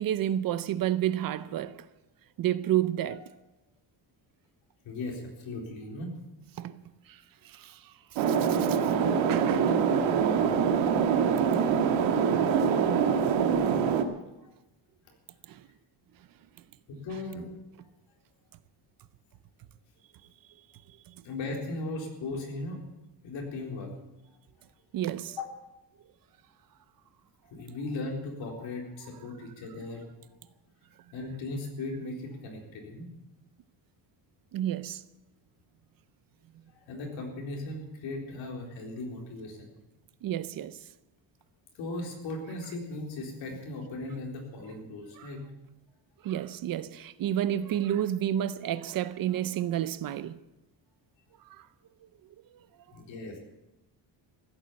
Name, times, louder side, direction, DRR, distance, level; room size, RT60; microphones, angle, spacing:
voice 1, 0.0-1.8 2.4-3.2 6.6-6.8 7.1-8.8 9.3-10.1 10.6-10.7 15.5-15.7 21.1-21.2 24.9-25.4 34.5-35.0 40.2-40.8 45.2-45.3 46.2-50.4 51.5-51.7, right 11 dB, 50° right, 0.6 m, -31 dB
voice 2, 4.8-6.1 12.6-12.7 13.7-13.9 16.9-17.5 21.2-22.9 23.2-23.9 25.4-25.5 27.5-30.0 31.1-33.1 36.8-39.7 41.7-45.5 52.9-53.4, left 2 dB, 75° left, 4.1 m, -37 dB
sound 1, 8.2-14.0, right 7 dB, 85° right, 1.6 m, -24 dB
15.5 x 8.8 x 8.5 m
cardioid pair, 170°, 46 cm